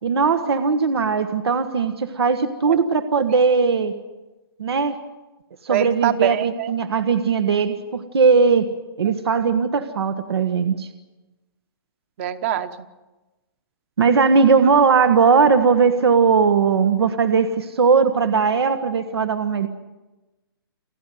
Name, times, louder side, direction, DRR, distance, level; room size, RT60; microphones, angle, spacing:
voice 1, 0.0-3.9 4.6-5.0 5.6-8.7 9.0-10.9 14.0-19.7, right 5 dB, 90° right, 8 dB, 1.5 m, -18 dB
voice 2, 5.7-6.7 9.0-9.1 12.2-12.9, right 10 dB, 30° right, 13 dB, 1.1 m, -24 dB
30.0 x 11.5 x 9.3 m, 1.1 s
hypercardioid pair, 165°, 13 cm